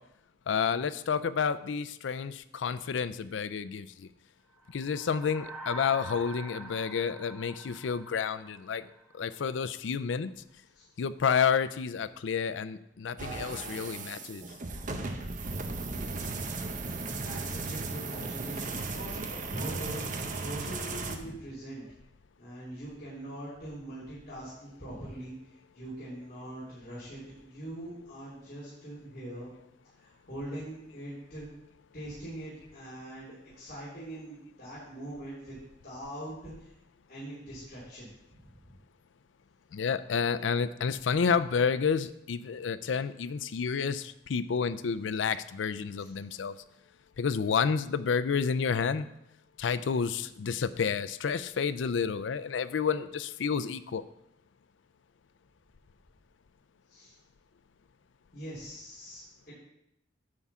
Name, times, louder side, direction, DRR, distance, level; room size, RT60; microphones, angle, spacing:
voice 1, 0.5-4.1 4.7-8.8 9.1-10.3 11.0-14.4 39.7-46.5 47.2-49.1 49.6-54.0, left 6 dB, 90° left, 14 dB, 0.4 m, -30 dB
sound 1, 4.6-9.2, right 1 dB, 5° right, 0.9 m, -45 dB
sound 2, 13.2-21.2, right 3 dB, 45° right, 0.8 m, -36 dB
voice 2, 17.1-21.9 22.4-25.3 25.7-29.5 30.0-31.5 31.9-36.7 37.1-38.7 46.0-46.1 56.9-57.1 58.3-59.5, right 1 dB, 55° left, -10 dB, 3.3 m, -42 dB
9.7 x 3.7 x 7.1 m, 0.83 s
head